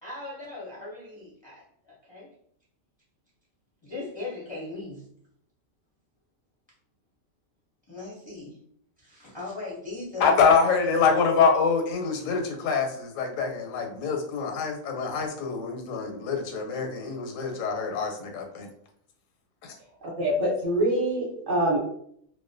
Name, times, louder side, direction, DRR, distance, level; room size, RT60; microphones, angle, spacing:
voice 1, 0.0-2.3 3.8-5.1 7.9-8.6 9.0-11.0, left 3 dB, 40° left, -7 dB, 0.4 m, -39 dB
voice 2, 10.2-18.7 19.6-19.7, left 5 dB, 85° left, 3 dB, 1.0 m, -25 dB
voice 3, 20.0-21.8, right 1 dB, 45° right, -4 dB, 0.8 m, -25 dB
2.3 x 2.2 x 2.5 m, 0.67 s
omnidirectional pair, 1.4 m